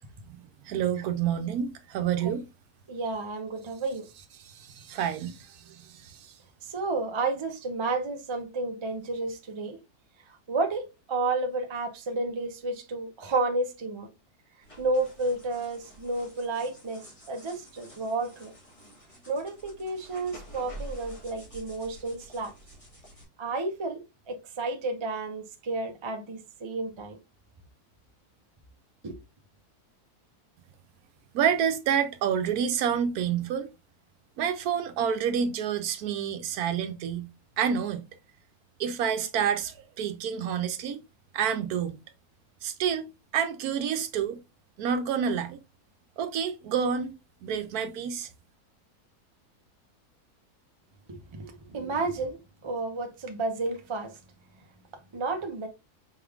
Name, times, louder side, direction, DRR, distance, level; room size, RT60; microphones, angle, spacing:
voice 1, 0.7-2.4 4.4-6.3 31.3-33.7 34.4-37.3 37.6-38.0 38.8-41.0 41.3-41.9 42.6-43.1 43.3-44.4 44.8-45.6 46.2-47.1 47.4-48.3, right 8 dB, 75° right, 1.1 m, -28 dB
voice 2, 2.9-4.1 6.7-9.8 10.5-14.1 14.8-18.5 19.3-22.5 23.4-24.0 24.3-27.2 29.0-29.2 51.1-52.4 52.6-54.1 55.1-55.7, right 3 dB, 40° right, 0.4 m, -31 dB
sound 1, 14.6-23.2, right 1 dB, 20° left, 1.3 m, -48 dB
5.2 x 3.5 x 2.3 m
omnidirectional pair, 1.7 m